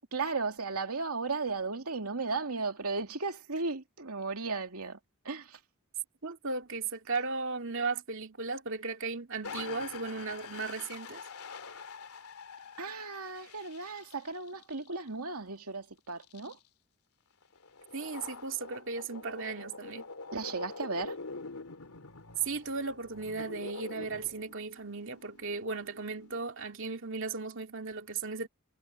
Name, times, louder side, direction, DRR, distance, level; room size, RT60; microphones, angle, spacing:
voice 1, 0.1-5.0 5.2-5.6 12.8-16.6 20.3-21.2, right 4 dB, 85° right, 2.6 m, -35 dB
voice 2, 6.2-11.2 17.9-20.0 22.4-28.5, right 4 dB, 60° right, 2.6 m, -36 dB
sound 1, 9.4-15.1 16.2-16.5 17.4-26.4, left 4 dB, 85° left, 2.7 m, -46 dB
head